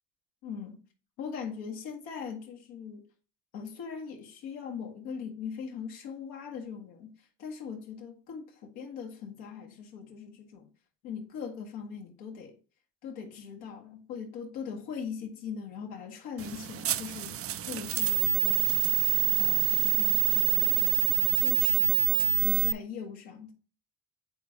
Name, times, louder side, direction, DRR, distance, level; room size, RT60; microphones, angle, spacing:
voice 1, 0.4-0.8 1.2-3.0 3.5-10.7 11.0-12.6 13.0-18.7 19.4-21.1 21.3-22.0 22.3-23.5, left 6 dB, 85° left, 1.7 m, -41 dB
sound 1, 16.4-22.7, right 16 dB, 40° right, 0.4 m, -26 dB
8.9 x 4.6 x 2.8 m
hypercardioid pair, 60°, 37 cm